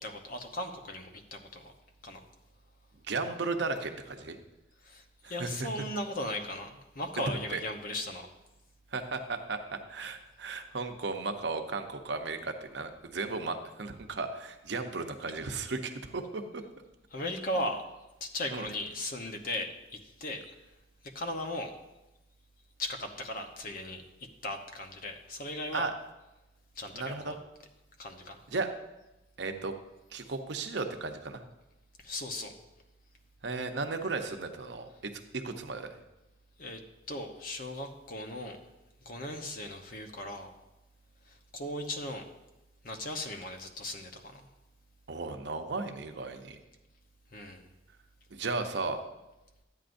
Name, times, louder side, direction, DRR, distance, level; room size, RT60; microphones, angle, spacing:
voice 1, 0.0-1.7 2.0-2.3 4.8-8.3 17.1-17.8 18.2-20.8 21.1-21.7 22.8-25.9 26.7-27.4 28.0-28.5 32.0-32.5 36.6-36.8 37.1-38.6 39.0-40.5 41.2-42.2 42.8-44.5 47.3-47.7, left 1 dB, 50° left, 4 dB, 1.0 m, -37 dB
voice 2, 3.0-4.4 5.2-5.7 7.5-7.6 8.9-16.6 18.5-18.7 25.7-25.9 26.9-27.3 28.5-28.7 29.4-29.8 30.1-31.4 33.4-35.9 45.1-46.6 48.3-49.0, right 3 dB, 65° right, 6 dB, 0.8 m, -35 dB
12.5 x 9.2 x 2.6 m, 0.98 s
head